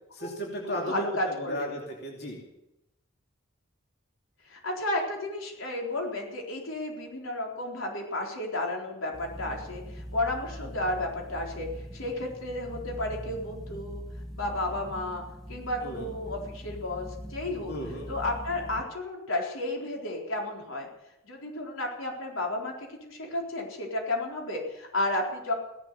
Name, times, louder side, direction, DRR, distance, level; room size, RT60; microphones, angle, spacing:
voice 1, 0.1-2.4 15.8-16.1 17.7-18.1, equal, 50° left, 0 dB, 2.8 m, -35 dB
voice 2, 0.7-1.7 4.5-14.0 14.3-15.2 15.5-17.7 18.1-20.9 21.2-22.7 23.0-25.5, left 1 dB, 90° left, 0 dB, 4.0 m, -32 dB
sound 1, 9.1-18.8, equal, ahead, 2.2 m, -42 dB
16.5 x 12.0 x 6.8 m, 0.87 s
head